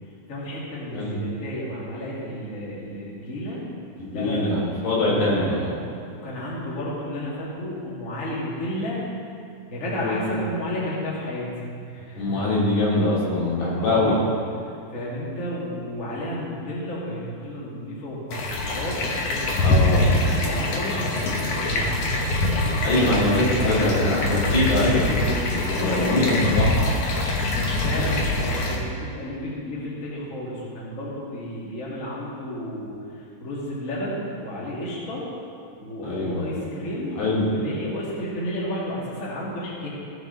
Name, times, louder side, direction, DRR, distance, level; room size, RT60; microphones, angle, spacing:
voice 1, 0.3-3.6 4.1-4.5 4.8-5.7 6.1-9.0 9.7-12.4 13.8-14.3 14.6-19.8 20.1-22.3 22.9-23.9 25.7-26.3 27.5-35.2 35.8-37.2 37.5-39.9, equal, 25° left, -6 dB, 1.8 m, -32 dB
voice 2, 4.0-5.6 10.0-10.3 12.2-14.2 19.6-20.3 22.8-26.7 36.0-36.4 37.2-37.5, left 1 dB, 90° left, -7 dB, 4.5 m, -23 dB
sound 1, 18.3-28.8, left 2 dB, 70° left, 1.4 m, -24 dB
17.0 x 6.3 x 4.0 m, 2.4 s
omnidirectional pair, 4.4 m